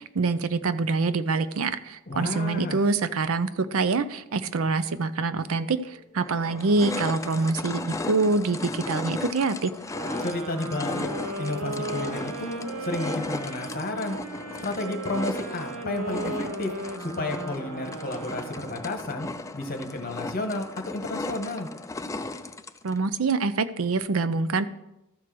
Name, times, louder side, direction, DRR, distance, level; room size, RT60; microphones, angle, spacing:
voice 1, 0.0-9.7 22.8-24.7, right 3 dB, 65° right, 13 dB, 0.5 m, -25 dB
voice 2, 2.1-2.8 10.2-11.1 11.3-14.2 14.6-16.7 17.0-19.3 19.5-21.7, left 2 dB, 40° left, 4 dB, 1.4 m, -32 dB
sound 1, 5.5-5.6 6.2-23.0, left 2 dB, 15° left, 0.4 m, -36 dB
sound 2, 9.9-19.1, right 2 dB, 85° right, 1.2 m, -36 dB
13.5 x 4.7 x 6.0 m, 0.91 s
head